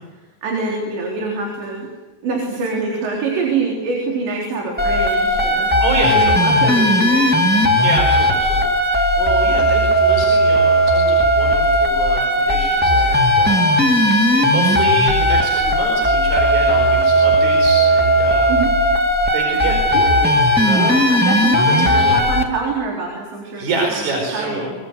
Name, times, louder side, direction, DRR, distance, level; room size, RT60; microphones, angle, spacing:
voice 1, 0.4-1.9 2.2-5.7 6.1-8.0 18.5-18.7 19.9-20.1 20.7-24.7, right 4 dB, 85° right, 0 dB, 6.0 m, -25 dB
sound 1, 4.8-22.4, equal, 5° right, 1.2 m, -16 dB
voice 2, 5.8-6.6 7.8-13.7 14.5-18.5 19.3-21.0 21.7-22.2 23.6-24.7, right 2 dB, 45° right, 0 dB, 5.8 m, -27 dB
25.0 x 23.0 x 8.1 m, 1.2 s
omnidirectional pair, 4.9 m